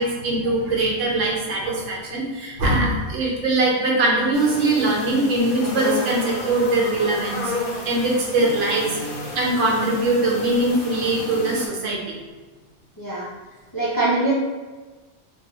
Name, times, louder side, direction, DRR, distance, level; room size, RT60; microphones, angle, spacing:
voice 1, 0.0-7.5 7.8-8.9 9.3-12.2, right 2 dB, 90° right, -2 dB, 1.0 m, -22 dB
sound 1, 4.3-11.7, left 2 dB, 55° left, 0.7 m, -31 dB
voice 2, 13.7-14.3, right 2 dB, 35° left, -8 dB, 0.3 m, -22 dB
2.6 x 2.3 x 2.9 m, 1.3 s
omnidirectional pair, 1.2 m